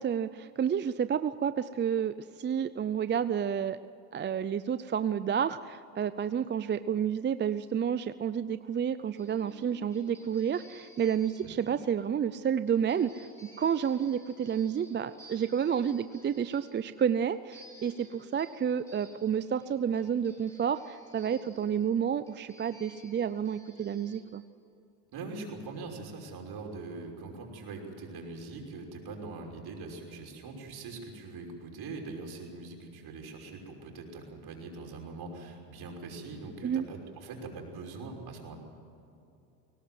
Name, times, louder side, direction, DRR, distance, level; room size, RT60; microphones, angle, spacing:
voice 1, 0.0-3.8 4.1-24.4 36.6-36.9, right 8 dB, 25° right, 13 dB, 0.5 m, -30 dB
Teks Sharp Twangy Guitar, 9.2-24.2, left 1 dB, 5° left, 7.0 m, -55 dB
voice 2, 11.4-11.8 25.1-38.6, right 3 dB, 50° right, 2 dB, 5.8 m, -42 dB
22.5 x 18.0 x 7.6 m, 2.8 s
supercardioid pair, 95°, 47 cm